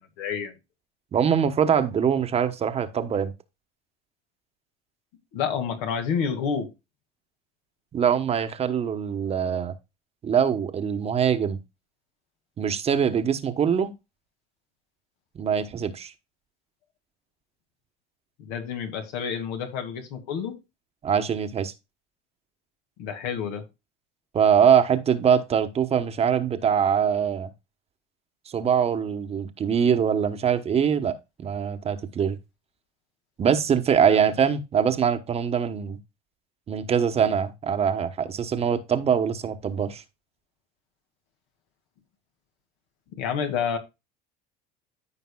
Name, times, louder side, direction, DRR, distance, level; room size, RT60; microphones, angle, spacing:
voice 1, 0.2-0.5 5.3-6.7 18.4-20.6 23.0-23.6 34.1-34.2 43.2-43.8, left 7 dB, 75° left, 2.2 m, -29 dB
voice 2, 1.1-3.3 7.9-9.7 10.2-11.6 12.6-13.9 15.3-16.1 21.0-21.7 24.3-27.5 28.5-32.4 33.4-36.0 36.7-40.0, right 7 dB, 30° right, 1.1 m, -23 dB
14.0 x 5.2 x 2.3 m
supercardioid pair, 115°, 20 cm